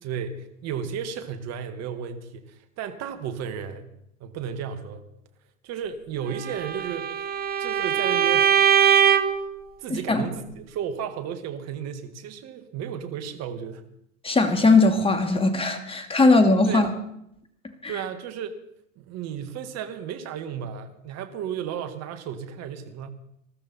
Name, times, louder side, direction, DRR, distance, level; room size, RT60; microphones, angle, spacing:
voice 1, 0.0-3.9 4.2-5.0 5.6-7.1 7.6-8.7 9.1-9.3 9.8-13.8 16.7-17.0 17.9-18.6 19.0-23.1, right 8 dB, 40° right, 8 dB, 1.9 m, -34 dB
Bowed string instrument, 6.4-9.5, right 8 dB, 25° right, 1.0 m, -21 dB
voice 2, 9.9-10.2 14.2-16.9 17.8-17.9, left 3 dB, 15° left, 7 dB, 2.2 m, -19 dB
20.5 x 13.5 x 4.3 m, 0.77 s
hypercardioid pair, 95°, 39 cm